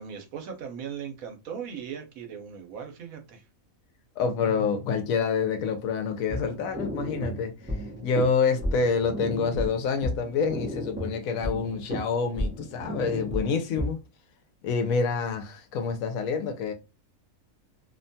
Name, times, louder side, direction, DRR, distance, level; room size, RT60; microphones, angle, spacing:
voice 1, 0.0-3.4, right 7 dB, 85° right, 1.1 m, -38 dB
voice 2, 4.2-7.5 8.0-14.0 14.6-16.7, left 5 dB, 80° left, 1.0 m, -27 dB
sound 1, 6.3-13.9, equal, 15° right, 0.4 m, -33 dB
2.7 x 2.2 x 2.6 m
omnidirectional pair, 1.4 m